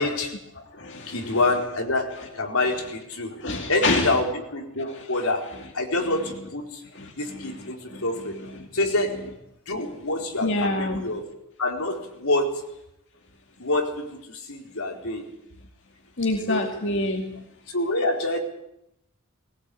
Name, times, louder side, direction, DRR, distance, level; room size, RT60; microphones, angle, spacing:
voice 1, 0.0-0.4 1.1-3.3 3.7-4.2 4.5-6.8 7.2-8.4 8.7-9.2 9.7-11.2 11.6-12.6 13.6-15.3 16.5-16.6 17.7-18.4, left 2 dB, 85° left, 2 dB, 4.3 m, -26 dB
voice 2, 0.6-1.4 3.4-4.2 4.8-5.3 5.5-5.6 6.0-6.1 6.9-8.7 10.4-11.0 16.2-17.4, left 2 dB, 55° left, 2 dB, 2.4 m, -28 dB
21.5 x 18.0 x 8.5 m, 0.80 s
head